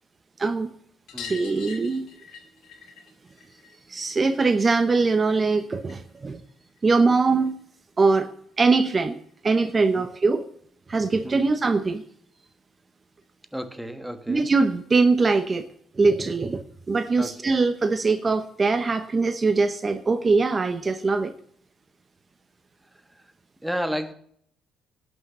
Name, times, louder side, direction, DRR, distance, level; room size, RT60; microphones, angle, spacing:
voice 1, 0.4-0.7 1.2-2.1 3.9-6.4 6.8-7.5 8.0-8.3 8.6-10.4 10.9-12.0 14.3-15.7 16.0-21.3, right 4 dB, 35° right, 0.8 m, -22 dB
sound 1, 1.1-6.2 6.5-7.6 9.0-9.1 9.3-9.4 9.7-9.8 11.1-11.2 11.5-11.6 11.9-12.0 13.2-13.3 14.1-14.2, left 7 dB, 70° left, 2.2 m, -45 dB
voice 2, 13.5-14.5 17.2-17.6 23.1-23.3 23.6-24.1, equal, 5° right, 1.4 m, -32 dB
11.5 x 6.5 x 7.4 m
supercardioid pair, 70°, 0 cm